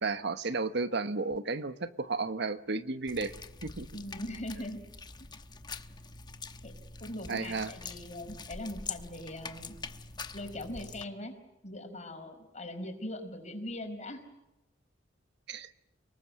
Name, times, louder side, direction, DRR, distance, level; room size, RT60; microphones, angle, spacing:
voice 1, 0.0-3.3 3.6-3.9 7.3-7.7 15.5-15.7, right 3 dB, 65° right, 11 dB, 1.1 m, -33 dB
sound 1, 3.1-11.0, left 4 dB, 25° left, 1.0 m, -44 dB
voice 2, 3.9-4.8 6.6-6.7 7.0-9.7 10.3-11.3 11.6-14.2, left 1 dB, 40° left, 5 dB, 5.0 m, -40 dB
29.5 x 19.5 x 8.7 m, 0.94 s
head